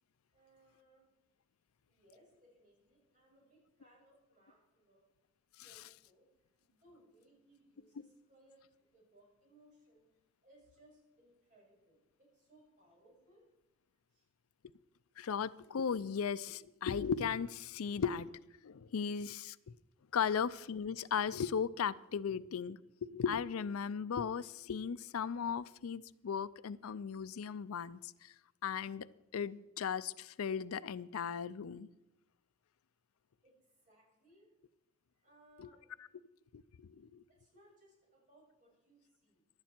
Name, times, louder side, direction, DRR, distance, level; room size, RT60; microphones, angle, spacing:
voice 1, 0.3-1.1 1.9-5.0 5.6-10.0 10.4-13.4 14.1-14.3 20.3-20.4 33.4-34.5 35.1-35.9 37.3-39.4, right 1 dB, 40° right, -3 dB, 6.1 m, -66 dB
voice 2, 15.2-18.4 18.6-19.7 20.1-28.3 28.6-29.1 29.3-31.9 35.6-35.7 36.5-37.2, left 6 dB, 85° left, 17 dB, 0.5 m, -37 dB
16.5 x 11.5 x 4.5 m, 0.92 s
head